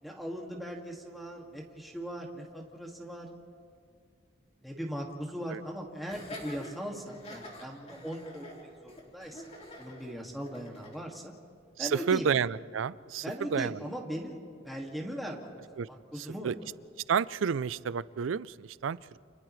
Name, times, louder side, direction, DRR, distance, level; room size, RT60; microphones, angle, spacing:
voice 1, 0.0-3.3 4.6-9.4 9.8-11.3 11.8-12.3 13.2-16.5, equal, ahead, -2 dB, 2.1 m, -39 dB
Laughter, 6.0-11.0, left 1 dB, 35° left, 3.8 m, -47 dB
voice 2, 11.8-13.2 13.5-13.8 15.8-15.9 16.4-16.5 17.1-19.2, right 6 dB, 80° right, 18 dB, 0.4 m, -30 dB
30.0 x 28.5 x 3.2 m, 2.2 s
head